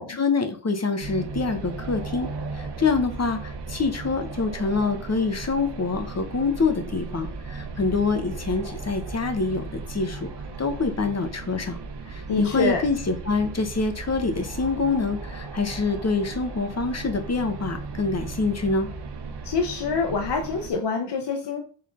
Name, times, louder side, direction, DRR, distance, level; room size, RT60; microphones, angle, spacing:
voice 1, 0.0-10.3 10.6-11.8 12.1-18.9, left 4 dB, 35° left, 8 dB, 1.2 m, -26 dB
sound 1, 1.0-20.7, right 4 dB, 65° right, 1.1 m, -36 dB
voice 2, 12.3-12.8 19.4-21.6, left 4 dB, 70° left, 3 dB, 1.0 m, -26 dB
5.6 x 3.7 x 5.2 m, 0.40 s
wide cardioid pair, 110°, 43 cm